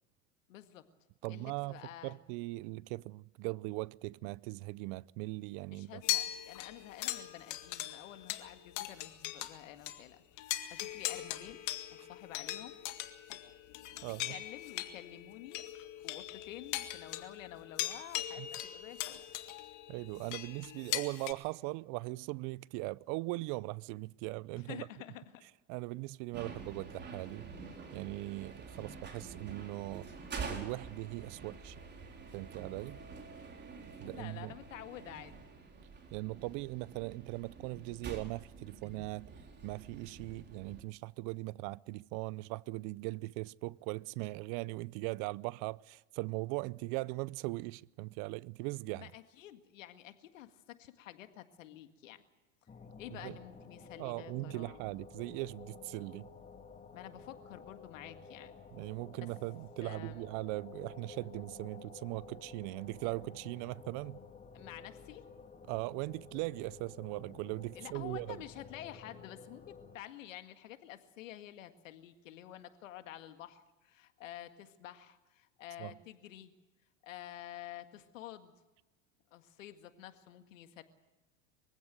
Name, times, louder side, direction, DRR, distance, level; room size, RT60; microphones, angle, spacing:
voice 1, 0.5-0.8 1.3-2.2 5.7-12.8 13.7-15.7 16.0-19.2 24.6-25.4 33.9-35.5 48.9-52.2 53.0-54.8 56.9-58.5 59.8-60.3 64.5-65.2 67.8-76.5 77.0-78.6 79.3-80.8, left 12 dB, 80° left, 1.9 m, -50 dB
voice 2, 1.2-6.0 12.0-12.1 14.0-14.3 18.4-18.5 19.9-24.9 25.7-27.5 27.9-30.1 30.5-31.8 32.3-33.0 34.0-34.5 36.1-39.3 39.6-49.1 53.1-53.4 54.0-56.3 58.7-64.2 65.7-68.4 75.8-75.9, right 23 dB, 55° right, 0.6 m, -40 dB
sound 1, 6.0-9.6 9.9-10.0 10.4-21.3, left 14 dB, 50° left, 2.0 m, -40 dB
sound 2, 26.3-40.8, right 4 dB, 25° right, 4.2 m, -47 dB
sound 3, 52.7-70.0, left 5 dB, 20° left, 2.0 m, -52 dB
23.5 x 16.0 x 7.8 m
hypercardioid pair, 95°, 38 cm